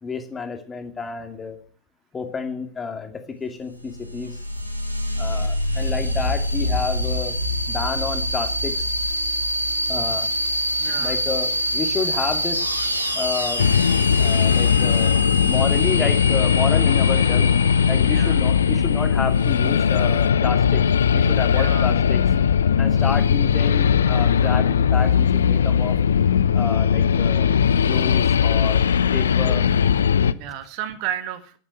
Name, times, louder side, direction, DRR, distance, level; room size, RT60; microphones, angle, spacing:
voice 1, 0.0-1.6 2.1-4.4 5.2-7.4 7.7-8.9 9.9-10.3 11.0-12.7 13.1-13.7 14.2-17.5 17.9-20.8 21.1-22.2 22.8-26.0 26.5-27.5 27.9-28.8 29.1-29.7, left 5 dB, 15° left, 6 dB, 2.4 m, -30 dB
sound 1, 3.7-20.1, left 1 dB, 90° right, 2.6 m, -26 dB
voice 2, 10.8-11.1 14.1-14.3 18.1-18.4 21.5-21.9 30.3-31.5, right 10 dB, 45° right, 10 dB, 1.7 m, -32 dB
sound 2, 13.6-30.3, left 7 dB, 65° left, 0.7 m, -19 dB
11.0 x 11.0 x 7.9 m, 0.43 s
figure-of-eight pair, 90°, 0 cm